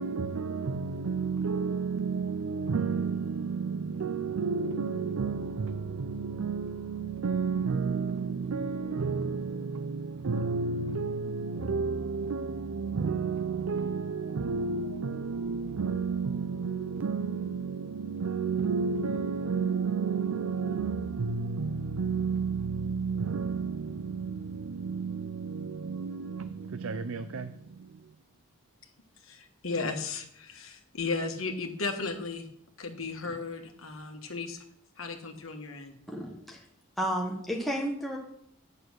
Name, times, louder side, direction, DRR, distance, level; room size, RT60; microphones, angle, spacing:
voice 1, 0.0-28.2, right 5 dB, 80° right, 0.5 m, -31 dB
voice 2, 29.3-32.5 32.8-34.6 35.0-36.0, left 4 dB, 80° left, 1.6 m, -35 dB
voice 3, 36.1-36.6 37.0-38.2, equal, ahead, 1.3 m, -32 dB
8.6 x 6.7 x 6.4 m
head